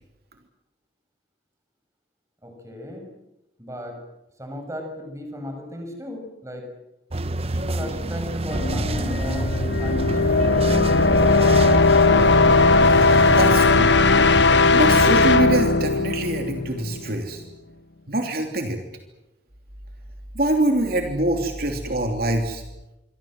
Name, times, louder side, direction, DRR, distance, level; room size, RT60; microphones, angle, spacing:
voice 1, 2.4-3.1 3.6-4.0 4.4-6.7 7.5-11.3, left 1 dB, 20° right, 4 dB, 6.5 m, -36 dB
sound 1, 7.1-13.5, right 2 dB, 35° right, 0.9 m, -28 dB
sound 2, 8.5-15.4, left 3 dB, 70° left, 3.4 m, -25 dB
sound 3, 9.5-17.2, left 3 dB, 90° left, 1.2 m, -18 dB
voice 2, 13.4-13.9 14.7-17.4 18.1-18.8 20.3-22.6, right 1 dB, 60° right, 4 dB, 3.1 m, -24 dB
27.0 x 24.5 x 7.7 m, 0.94 s
head